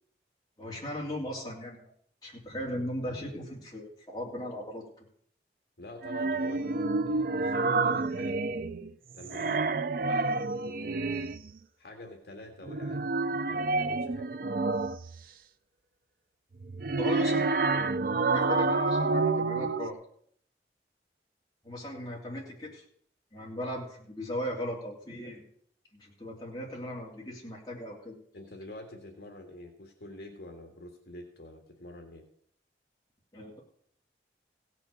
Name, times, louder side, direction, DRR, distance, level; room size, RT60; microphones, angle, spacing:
voice 1, 0.6-1.9 2.2-4.9 17.0-17.5 18.2-20.0 21.6-22.8 23.3-25.5 25.9-28.1 33.3-33.6, equal, 20° left, -4 dB, 3.1 m, -37 dB
voice 2, 5.8-6.6 7.1-8.4 9.1-9.7 10.0-11.0 11.8-13.0 13.3-14.3 28.3-32.2, left 1 dB, 65° left, 2 dB, 1.9 m, -46 dB
sound 1, 6.0-8.9 9.2-11.5 12.6-15.2 16.6-19.9, right 3 dB, 50° right, 0.5 m, -29 dB
16.5 x 6.2 x 7.0 m, 0.63 s
head